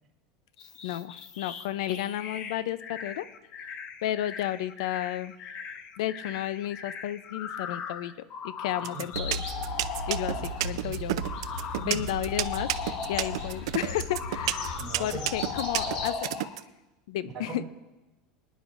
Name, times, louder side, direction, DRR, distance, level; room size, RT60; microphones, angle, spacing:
sound 1, 0.6-10.8 11.2-13.7 14.1-16.6, left 7 dB, 30° left, 0.5 m, -39 dB
voice 1, 0.8-3.3 3.6-3.7 4.0-5.3 6.0-8.1 8.4-9.4 10.1-16.3 17.1-17.6, left 12 dB, 75° left, 16 dB, 0.5 m, -33 dB
sound 2, 8.8-16.6, right 16 dB, 80° right, 0.5 m, -29 dB
sound 3, 9.1-16.1, equal, 60° left, 2.2 m, -37 dB
voice 2, 10.3-11.0 11.8-12.0 14.7-15.5 15.8-16.0 17.2-17.7, right 6 dB, 25° right, -6 dB, 4.7 m, -41 dB
25.5 x 10.0 x 2.5 m, 1.0 s
supercardioid pair, 180°, 3 cm